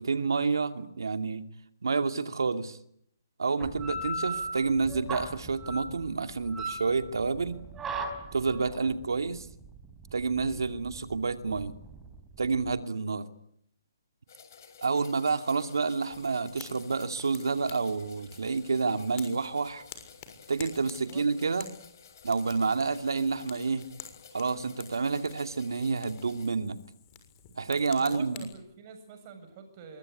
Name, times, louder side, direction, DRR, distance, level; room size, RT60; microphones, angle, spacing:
voice 1, 0.0-1.4 1.8-2.8 3.4-7.6 8.3-9.5 10.1-11.7 12.4-13.3 14.8-19.8 20.5-21.7 22.2-23.9 24.3-26.8 27.6-28.5, right 4 dB, 85° right, 9 dB, 2.5 m, -29 dB
sound 1, 3.6-12.8, right 2 dB, 10° right, 4.2 m, -38 dB
sound 2, 14.3-26.5, left 7 dB, 55° left, 7.7 m, -53 dB
voice 2, 14.9-15.2 21.0-21.2 28.0-30.0, right 6 dB, 35° right, 7 dB, 7.7 m, -47 dB
Fire, 16.1-28.5, left 9 dB, 30° left, 6.6 m, -51 dB
25.0 x 22.5 x 9.9 m, 0.72 s
hypercardioid pair, 150°, 2 cm